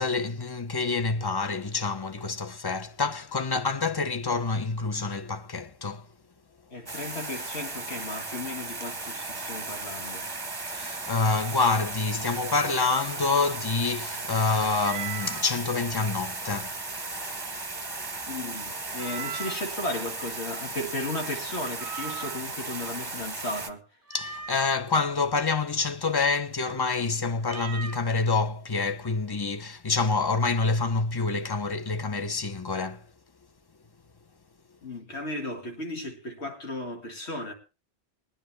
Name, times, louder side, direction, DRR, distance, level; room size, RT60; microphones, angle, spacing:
voice 1, 0.0-6.1 10.7-16.8 24.1-33.0, left 4 dB, 25° left, 0.8 m, -27 dB
voice 2, 6.7-10.3 18.3-23.8 34.8-37.5, left 1 dB, 75° left, 2.3 m, -35 dB
sound 1, 6.9-23.7, right 3 dB, 20° right, 1.0 m, -36 dB
Meow, 14.8-15.5 19.0-19.8 21.8-22.6 24.1-24.8 27.4-28.1, right 7 dB, 55° right, 0.9 m, -38 dB
21.0 x 10.0 x 3.3 m
omnidirectional pair, 1.1 m